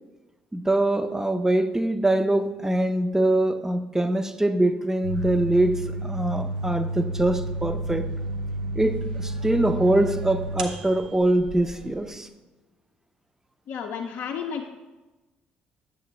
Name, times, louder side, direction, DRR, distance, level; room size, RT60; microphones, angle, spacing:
voice 1, 0.5-8.1 8.8-12.3, right 1 dB, 10° right, 10 dB, 0.5 m, -23 dB
sound 1, 5.0-12.1, right 1 dB, 85° right, 0.5 m, -31 dB
voice 2, 13.7-14.7, left 7 dB, 55° left, 1 dB, 0.5 m, -32 dB
7.9 x 7.2 x 2.8 m, 1.1 s
hypercardioid pair, 50°, 4 cm